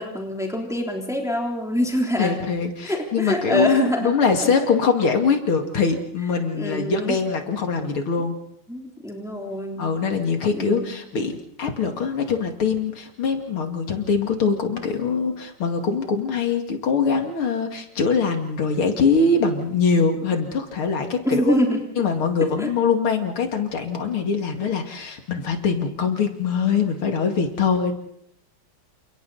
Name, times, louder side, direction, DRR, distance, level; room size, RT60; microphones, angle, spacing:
voice 1, 0.0-2.4 2.8-4.1 6.6-7.2 8.7-9.9 10.5-10.9 21.2-21.8 22.6-22.7, equal, ahead, 0 dB, 3.3 m, -25 dB
voice 2, 2.2-8.4 9.8-21.6 22.0-27.9, left 5 dB, 85° left, 4 dB, 3.2 m, -23 dB
29.5 x 28.0 x 4.2 m, 0.73 s
omnidirectional pair, 2.3 m